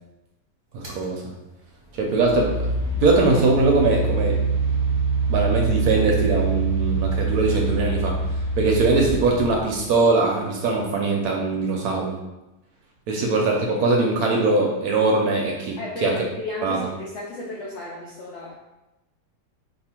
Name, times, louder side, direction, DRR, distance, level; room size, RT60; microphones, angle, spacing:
voice 1, 0.7-1.3 1.9-2.7 3.0-4.4 5.3-8.2 8.6-12.2 13.1-16.1 16.6-16.8, right 3 dB, 70° right, 0 dB, 0.9 m, -21 dB
sound 1, 0.8-1.0 1.9-10.0, right 3 dB, 35° right, 0.8 m, -25 dB
voice 2, 15.8-18.5, left 2 dB, 80° left, -4 dB, 0.6 m, -34 dB
2.7 x 2.6 x 4.2 m, 0.99 s
omnidirectional pair, 1.9 m